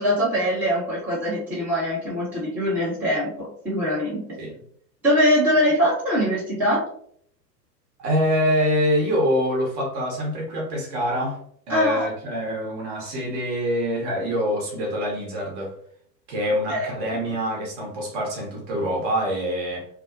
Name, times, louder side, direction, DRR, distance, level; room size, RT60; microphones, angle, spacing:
voice 1, 0.0-4.2 5.0-6.8 11.7-12.1 16.7-16.9, equal, 5° right, -10 dB, 0.7 m, -22 dB
voice 2, 8.0-11.4 11.7-15.7 16.3-19.9, equal, 30° right, -2 dB, 0.8 m, -25 dB
2.5 x 2.0 x 2.4 m, 0.64 s
figure-of-eight pair, 105°, 50 cm